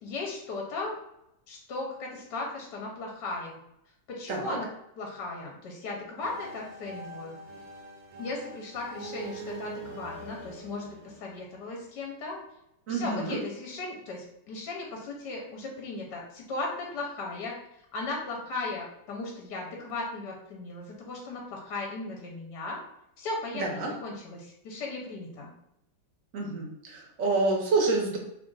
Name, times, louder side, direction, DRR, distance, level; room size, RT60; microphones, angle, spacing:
voice 1, 0.0-0.9 1.5-3.6 4.1-4.7 5.0-7.4 8.2-12.4 12.9-17.6 17.9-22.8 23.2-25.5, left 3 dB, 65° left, -1 dB, 1.3 m, -37 dB
sound 1, 6.2-12.0, right 2 dB, 90° right, 1.5 m, -43 dB
voice 2, 12.9-13.4 23.5-23.9 26.3-28.2, right 3 dB, 55° right, 0 dB, 1.0 m, -28 dB
3.4 x 2.5 x 3.8 m, 0.78 s
omnidirectional pair, 2.1 m